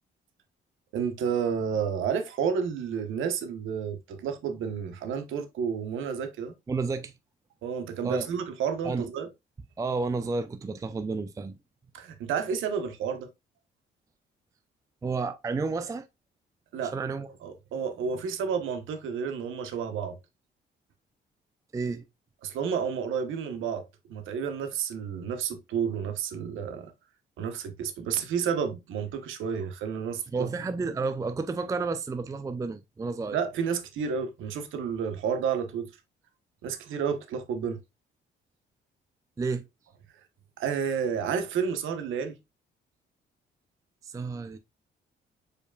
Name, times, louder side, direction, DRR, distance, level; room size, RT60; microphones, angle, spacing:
voice 1, 0.9-6.5 7.6-9.3 11.9-13.3 16.7-16.9 17.4-20.2 22.4-23.8 24.1-26.9 27.4-30.5 33.3-35.9 36.6-37.8 40.6-42.3, right 7 dB, 80° right, 1.0 m, -30 dB
voice 2, 6.7-7.1 8.0-8.2 8.8-9.1 9.8-11.6 15.0-16.1 16.9-17.3 21.7-22.0 30.3-33.4 39.4-39.6 44.0-44.6, right 4 dB, 15° right, 0.4 m, -31 dB
5.0 x 4.7 x 2.2 m
cardioid pair, 90°, 20 cm